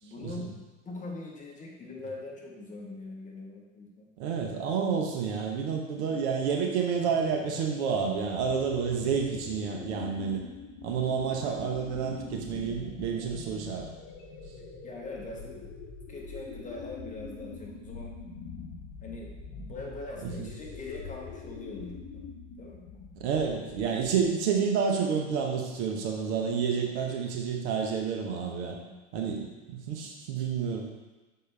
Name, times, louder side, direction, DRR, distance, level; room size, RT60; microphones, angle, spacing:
voice 1, 0.0-4.1 14.8-15.6 16.1-18.1 19.0-22.2 22.6-22.8 28.8-29.0, left 2 dB, 20° left, -2 dB, 1.3 m, -42 dB
voice 2, 4.2-10.4 10.8-13.9 20.2-20.5 23.2-28.8 29.1-30.9, right 6 dB, 60° right, 1 dB, 1.2 m, -29 dB
sound 1, 7.0-24.5, left 4 dB, 40° left, 1.2 m, -44 dB
6.5 x 4.5 x 3.4 m, 1.2 s
hypercardioid pair, 95°, 39 cm